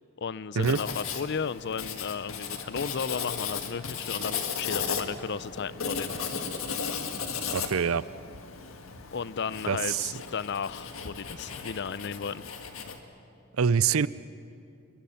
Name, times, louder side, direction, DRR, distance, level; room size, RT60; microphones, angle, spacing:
voice 1, 0.2-6.1 9.1-12.4, left 6 dB, 55° left, 18 dB, 0.5 m, -34 dB
Writing, 0.6-13.0, left 6 dB, 80° left, 1.7 m, -36 dB
voice 2, 7.5-8.0 9.7-10.1 13.6-14.1, right 6 dB, 85° right, 18 dB, 0.6 m, -25 dB
28.5 x 22.0 x 5.8 m, 2.5 s
head